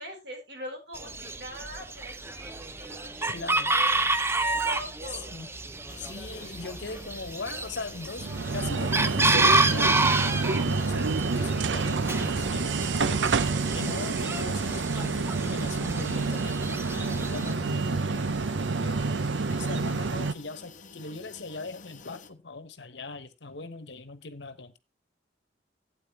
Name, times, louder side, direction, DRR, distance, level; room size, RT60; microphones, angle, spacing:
voice 1, 0.0-3.9 4.4-5.3 6.2-7.1, equal, 65° right, 4.4 m, -42 dB
Chicken rooster, 0.9-17.5, right 2 dB, 15° right, 0.6 m, -29 dB
voice 2, 3.3-3.7 5.3-5.5 6.0-10.1 10.5-13.3 13.7-18.4 18.8-19.0 19.5-24.8, left 3 dB, 70° left, 1.2 m, -40 dB
sound 1, 5.9-22.3, left 4 dB, 45° left, 1.1 m, -49 dB
sound 2, 8.2-20.3, right 4 dB, 90° right, 0.7 m, -28 dB
12.5 x 9.0 x 3.2 m
head